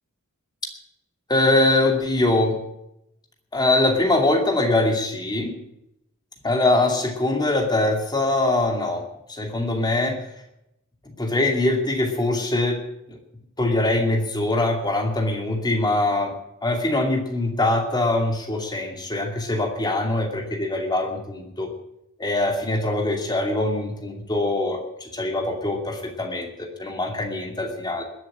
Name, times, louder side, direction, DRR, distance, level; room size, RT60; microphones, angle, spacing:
voice 1, 1.3-2.5 3.5-5.5 6.4-9.0 9.3-10.2 11.2-12.8 13.1-13.2 13.6-16.3 16.6-21.7 22.2-28.0, left 2 dB, 20° left, 3 dB, 2.5 m, -23 dB
20.5 x 7.7 x 7.4 m, 0.81 s
head